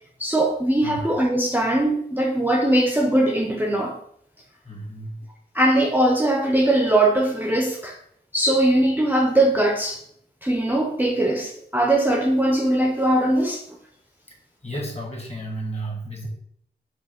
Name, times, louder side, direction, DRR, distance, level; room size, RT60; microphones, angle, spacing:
voice 1, 0.2-4.0 5.5-8.0 8.3-10.0 10.4-13.6, right 1 dB, 10° right, 2 dB, 0.5 m, -20 dB
voice 2, 0.8-1.1 4.6-5.2 14.3-14.4 14.6-16.3, right 1 dB, 35° left, 0 dB, 1.3 m, -32 dB
4.7 x 2.5 x 4.2 m, 0.67 s
wide cardioid pair, 90°, 18 cm